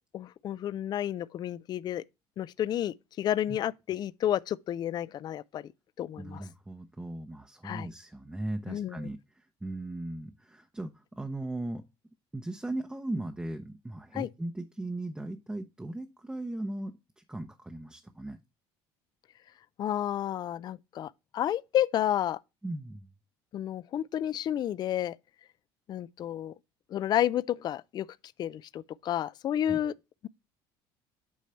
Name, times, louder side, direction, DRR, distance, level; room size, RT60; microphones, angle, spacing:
voice 1, 0.1-2.0 2.4-5.6 6.0-6.4 7.6-7.9 8.7-9.0 14.1-14.3 19.8-22.4 23.5-25.2 25.9-26.5 26.9-28.1 28.4-29.9, left 11 dB, 45° left, 0.3 m, -31 dB
voice 2, 6.2-11.8 12.3-18.4 22.6-23.1 29.7-29.8, right 1 dB, 10° right, 0.7 m, -38 dB
8.4 x 3.1 x 5.7 m
supercardioid pair, 105°, 10 cm